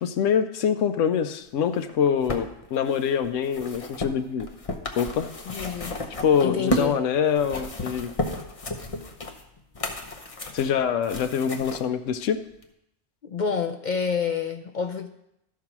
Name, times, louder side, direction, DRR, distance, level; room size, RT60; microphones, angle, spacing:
voice 1, 0.0-4.5 5.0-5.3 6.2-8.1 10.5-12.4, left 7 dB, 80° left, 8 dB, 1.0 m, -24 dB
sound 1, 1.8-7.0 7.3-11.8 12.6-12.7, left 1 dB, 30° left, 0.8 m, -33 dB
voice 2, 5.4-5.9 6.4-7.0 13.2-15.1, left 6 dB, 55° left, 7 dB, 0.5 m, -28 dB
12.5 x 4.7 x 6.0 m, 0.80 s
omnidirectional pair, 1.3 m